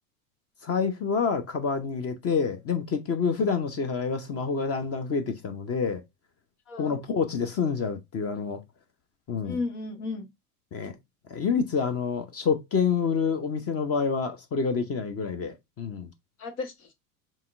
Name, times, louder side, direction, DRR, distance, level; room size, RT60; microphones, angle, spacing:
voice 1, 0.6-6.0 6.8-8.6 9.3-9.6 10.7-10.9 11.3-16.1, left 5 dB, 30° left, 0.9 m, -27 dB
voice 2, 6.7-7.0 9.4-10.3 16.4-16.9, left 3 dB, 70° left, 1.5 m, -34 dB
5.6 x 3.1 x 2.6 m
hypercardioid pair, 85°, 46 cm